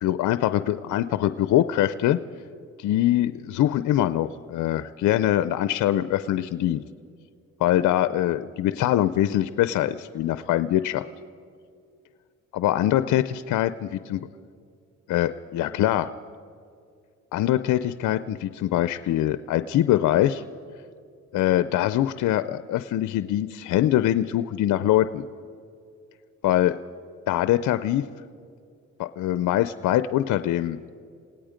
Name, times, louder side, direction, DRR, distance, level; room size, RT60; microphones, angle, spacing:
voice 1, 0.0-2.2 2.8-6.8 7.6-11.0 12.5-13.2 13.5-14.3 15.1-16.1 17.3-20.4 21.3-25.2 26.4-26.8 27.3-28.0 29.0-30.8, left 13 dB, 75° left, 12 dB, 0.6 m, -23 dB
28.5 x 18.0 x 5.1 m, 2.3 s
cardioid pair, 90°, 30 cm